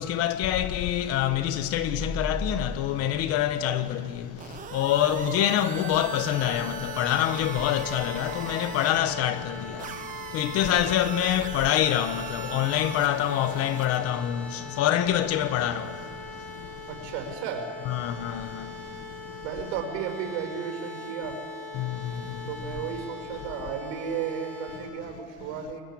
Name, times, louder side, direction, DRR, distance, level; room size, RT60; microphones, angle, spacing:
voice 1, 0.0-4.2 4.7-9.6 10.3-14.5 14.8-15.9 17.9-18.6 21.8-21.9, left 11 dB, 45° left, 1.1 m, -25 dB
sound 1, 1.3-3.9, left 1 dB, 25° left, 2.3 m, -36 dB
sound 2, 4.4-9.0 9.8-14.0, right 9 dB, 25° right, 0.8 m, -40 dB
sound 3, 5.9-24.8, left 2 dB, 5° left, 3.2 m, -41 dB
voice 2, 16.9-17.7 19.4-21.4 22.5-25.8, right 7 dB, 70° right, 5.7 m, -34 dB
29.5 x 22.0 x 8.5 m
cardioid pair, 175°, 33 cm